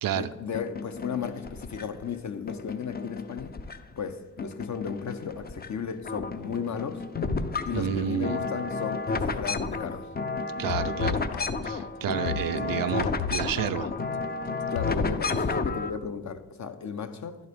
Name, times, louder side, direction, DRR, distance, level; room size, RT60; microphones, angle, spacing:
voice 1, 0.1-3.5 4.0-7.0 7.7-10.1 14.7-17.4, left 6 dB, 45° left, 9 dB, 0.9 m, -34 dB
sound 1, 0.5-2.0 2.5-4.1 4.4-5.7 6.0-15.9, left 4 dB, 25° left, 0.6 m, -32 dB
voice 2, 7.7-8.4 10.6-11.2 11.6-13.9, right 10 dB, 55° right, 12 dB, 0.5 m, -30 dB
sound 2, 10.7-15.6, left 11 dB, 65° left, 0.5 m, -36 dB
11.0 x 4.0 x 5.1 m, 1.1 s
hypercardioid pair, 40°, 40 cm